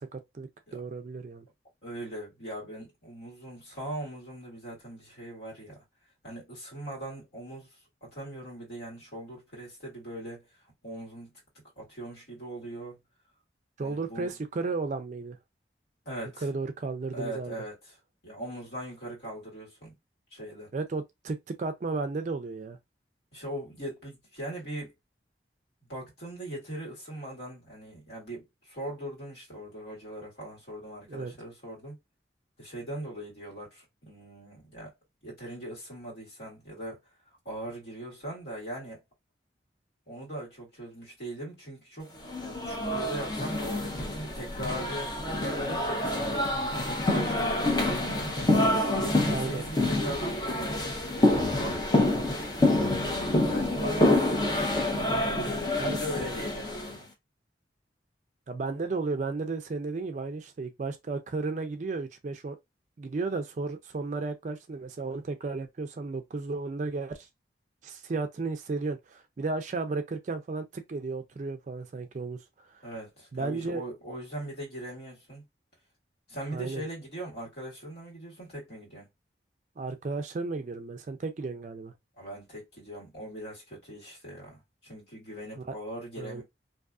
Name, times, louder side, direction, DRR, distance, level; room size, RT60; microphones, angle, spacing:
voice 1, 0.0-1.5 13.8-15.4 16.4-17.6 20.7-22.8 31.1-31.3 49.2-49.7 55.8-56.0 58.5-62.6 63.0-67.3 67.8-72.9 73.3-73.8 76.5-76.8 79.8-81.9 85.6-85.7 86.2-86.4, right 3 dB, 40° right, 0.3 m, -34 dB
voice 2, 1.8-5.8 6.2-7.7 8.0-10.5 10.8-11.3 11.8-13.0 13.8-14.3 16.0-16.5 17.1-17.8 18.2-19.9 20.3-20.7 23.3-24.9 25.9-32.0 32.6-34.9 35.2-37.0 37.4-39.0 40.1-52.1 53.0-54.6 55.1-57.1 72.8-75.4 76.3-79.1 82.2-86.4, right 1 dB, 65° left, 1.5 m, -40 dB
sound 1, 42.3-57.0, left 1 dB, 25° left, 0.5 m, -27 dB
2.6 x 2.3 x 2.4 m
head